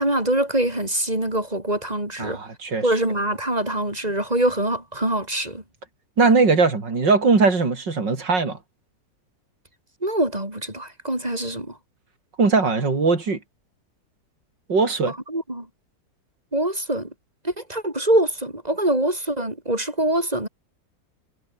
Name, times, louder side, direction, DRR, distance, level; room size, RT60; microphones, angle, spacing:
voice 1, 0.0-2.4 2.8-5.6 10.0-11.8 15.1-15.7 16.5-17.1 17.4-20.5, right 1 dB, 20° right, 6.0 m, -24 dB
voice 2, 2.2-2.8 6.2-8.6 12.4-13.4 14.7-15.1, right 4 dB, 85° right, 4.4 m, -20 dB
omnidirectional pair, 1.9 m